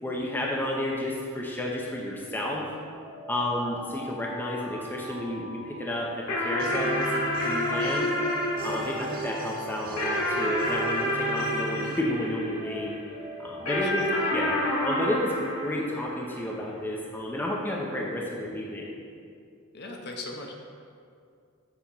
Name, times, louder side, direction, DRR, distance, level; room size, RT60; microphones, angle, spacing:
voice 1, 0.0-2.7 3.3-7.1 7.4-8.1 8.6-13.0 13.4-14.0 14.3-14.6 14.8-18.9, left 1 dB, 10° left, -3 dB, 0.5 m, -31 dB
Alarm, 2.9-7.1 7.6-12.1 12.6-16.4, left 2 dB, 70° right, 1.0 m, -43 dB
sound 1, 6.3-13.0 13.7-16.5, left 1 dB, 80° left, 1.5 m, -29 dB
sound 2, 6.6-12.0, right 4 dB, 40° right, 0.4 m, -38 dB
voice 2, 13.6-14.3 19.7-20.5, left 2 dB, 50° left, 1 dB, 0.7 m, -40 dB
7.0 x 2.9 x 5.3 m, 2.3 s
head